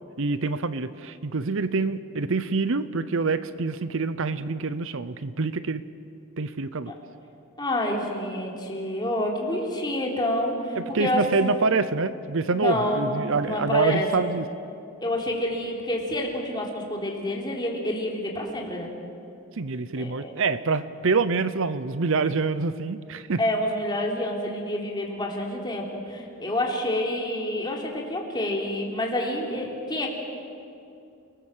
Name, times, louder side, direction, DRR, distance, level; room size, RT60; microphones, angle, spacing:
voice 1, 0.2-5.8 6.4-6.9 10.8-14.4 19.5-23.4, right 4 dB, 65° right, 14 dB, 0.7 m, -26 dB
voice 2, 7.6-11.6 12.5-14.3 15.0-18.9 20.0-20.4 23.4-30.1, left 1 dB, 20° left, -1 dB, 3.5 m, -28 dB
29.5 x 19.5 x 7.5 m, 2.6 s
head